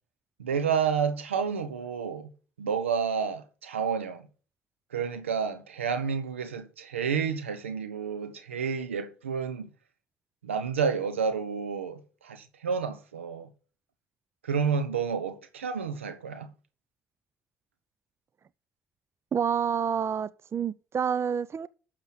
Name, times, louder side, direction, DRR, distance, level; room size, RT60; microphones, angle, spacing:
voice 1, 0.4-2.3 2.6-4.3 4.9-9.7 10.4-13.5 14.4-16.5, right 6 dB, 90° right, 1.1 m, -30 dB
voice 2, 19.3-21.7, right 7 dB, 40° right, 0.6 m, -28 dB
12.0 x 6.7 x 6.0 m
hypercardioid pair, 50°, 7 cm